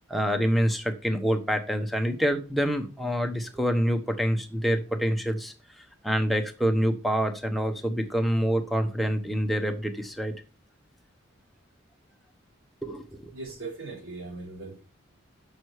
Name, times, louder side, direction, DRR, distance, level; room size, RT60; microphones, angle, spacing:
voice 1, 0.1-5.5 6.0-10.3 12.8-13.3, equal, ahead, 0.9 m, -26 dB
voice 2, 13.3-14.8, right 3 dB, 90° right, 3.8 m, -39 dB
6.5 x 6.2 x 4.7 m
head